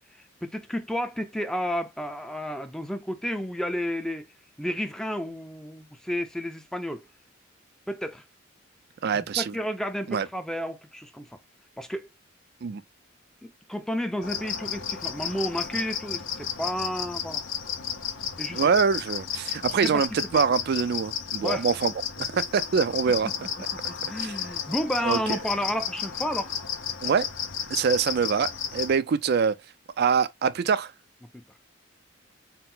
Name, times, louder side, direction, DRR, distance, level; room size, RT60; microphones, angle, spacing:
voice 1, 0.4-4.3 4.6-7.0 7.9-8.2 9.1-11.3 11.8-12.1 13.4-17.4 18.4-18.6 19.8-20.0 20.3-20.4 21.4-21.7 23.2-23.3 23.9-26.5 31.3-31.4, equal, 5° left, 0.5 m, -31 dB
voice 2, 9.0-9.5 10.1-10.3 12.6-12.8 18.5-23.3 24.2-24.3 25.0-25.2 27.0-27.3 27.7-29.5 30.0-30.9, right 6 dB, 55° right, 0.4 m, -24 dB
sound 1, 14.2-29.0, left 8 dB, 80° left, 1.0 m, -33 dB
4.4 x 2.0 x 3.8 m
head